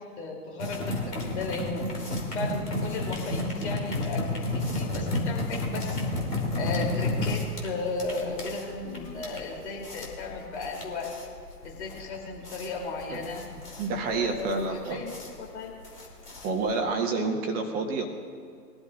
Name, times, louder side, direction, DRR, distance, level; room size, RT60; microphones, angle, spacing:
voice 1, 0.0-1.9 2.3-6.0 6.6-11.1 11.6-13.5 14.0-15.8, left 3 dB, 45° left, -1 dB, 3.1 m, -35 dB
sound 1, 0.6-16.9, left 2 dB, 70° left, 3.1 m, -32 dB
voice 2, 13.8-15.0 16.4-18.1, right 4 dB, 20° right, 3 dB, 1.3 m, -28 dB
22.0 x 12.5 x 2.5 m, 2.3 s
figure-of-eight pair, 120°, 48 cm